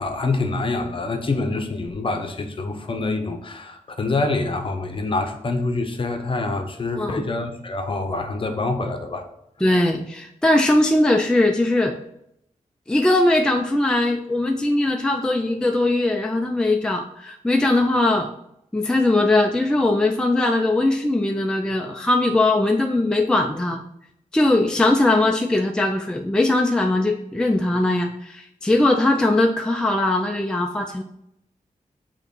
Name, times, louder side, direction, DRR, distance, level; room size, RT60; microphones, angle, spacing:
voice 1, 0.0-9.3, left 3 dB, 40° left, 6 dB, 0.7 m, -26 dB
voice 2, 9.6-12.0 12.9-18.3 18.7-23.8 24.3-31.0, left 2 dB, 5° left, 3 dB, 0.4 m, -20 dB
6.6 x 3.0 x 5.3 m, 0.77 s
wide cardioid pair, 155°, 14 cm